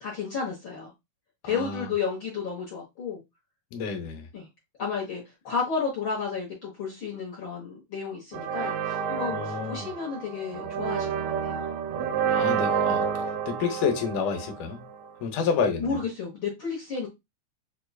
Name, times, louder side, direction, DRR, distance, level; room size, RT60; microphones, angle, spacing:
voice 1, 0.0-0.9 1.4-3.2 4.3-4.5 4.8-11.7 15.8-17.1, left 5 dB, 55° left, 1.3 m, -32 dB
voice 2, 1.4-1.9 3.7-4.3 9.3-9.9 12.3-13.0 13.5-14.8 15.2-16.0, left 6 dB, 80° left, 2.2 m, -29 dB
sound 1, 8.3-15.1, right 7 dB, 85° right, 1.4 m, -29 dB
5.1 x 2.3 x 2.2 m
omnidirectional pair, 3.6 m